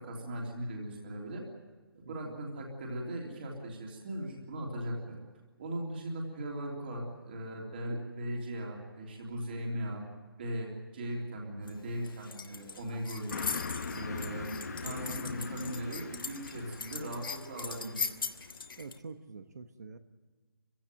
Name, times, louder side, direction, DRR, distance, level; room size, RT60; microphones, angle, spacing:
voice 1, 0.0-1.4 1.9-5.2 5.6-10.0 10.4-13.4 13.9-14.5 14.8-18.1, right 1 dB, 25° right, -1 dB, 3.2 m, -38 dB
voice 2, 2.0-2.4 18.8-20.0, right 4 dB, 45° right, 9 dB, 1.1 m, -46 dB
sound 1, 11.6-19.0, left 5 dB, 65° left, 1.6 m, -41 dB
Car passing by, 13.3-18.3, left 4 dB, 45° left, 1.3 m, -41 dB
25.5 x 16.0 x 9.2 m, 1.3 s
hypercardioid pair, 175°, 12 cm